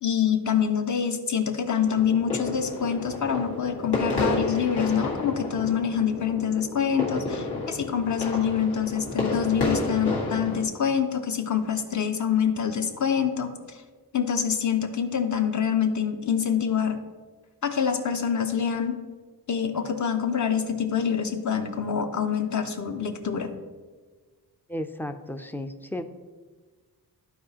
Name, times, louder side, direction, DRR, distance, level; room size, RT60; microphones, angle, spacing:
voice 1, 0.0-13.8 14.1-17.0 17.6-19.0 19.5-23.5, left 7 dB, 50° left, 6 dB, 0.8 m, -26 dB
sound 1, 1.8-10.6, left 2 dB, 85° left, 2.0 m, -31 dB
voice 2, 24.7-26.0, left 1 dB, 5° left, 8 dB, 0.3 m, -34 dB
13.5 x 4.8 x 2.8 m, 1.4 s
wide cardioid pair, 140°, 38 cm